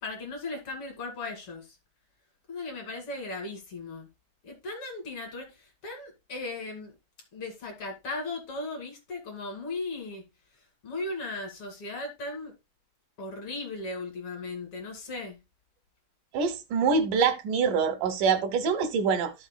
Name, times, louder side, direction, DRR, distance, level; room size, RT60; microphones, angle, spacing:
voice 1, 0.0-1.8 2.5-4.1 4.4-7.0 7.3-10.3 10.8-12.5 13.2-15.4, left 2 dB, 50° left, 3.1 m, -37 dB
voice 2, 16.3-19.3, right 5 dB, 85° right, 2.7 m, -25 dB
14.0 x 6.3 x 2.2 m
omnidirectional pair, 3.6 m